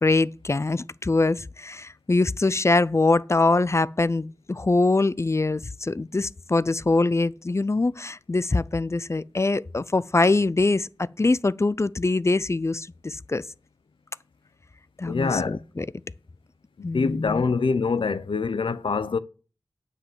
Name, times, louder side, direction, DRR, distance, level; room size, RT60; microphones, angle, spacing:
voice 1, 0.0-13.4 15.0-15.9 16.8-17.4, left 3 dB, 35° left, 0.4 m, -23 dB
voice 2, 15.1-15.6 16.9-19.2, left 4 dB, 75° left, 0.6 m, -25 dB
9.2 x 5.1 x 7.7 m
cardioid pair, 40°, 9 cm